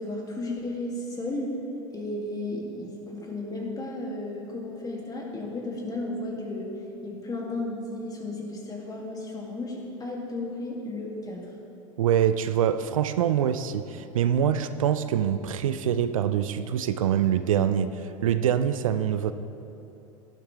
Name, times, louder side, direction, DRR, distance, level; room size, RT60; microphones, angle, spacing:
voice 1, 0.0-1.5 1.9-6.7 7.0-11.4, left 2 dB, 20° left, -2 dB, 2.5 m, -34 dB
voice 2, 12.0-19.3, right 9 dB, 80° right, 11 dB, 0.5 m, -25 dB
12.0 x 11.5 x 3.4 m, 2.9 s
hypercardioid pair, 85°, 17 cm